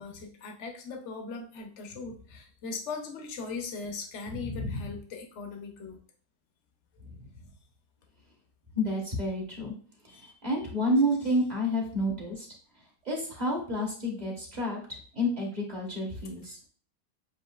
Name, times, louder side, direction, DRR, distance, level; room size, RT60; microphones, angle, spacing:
voice 1, 0.0-6.0 10.1-10.3, left 4 dB, 60° left, 3 dB, 1.1 m, -39 dB
voice 2, 4.3-4.8 7.0-7.1 8.7-9.7 10.4-12.5 13.0-14.8 15.1-16.6, equal, 30° right, -1 dB, 1.2 m, -29 dB
7.6 x 2.7 x 2.4 m, 0.43 s
omnidirectional pair, 1.5 m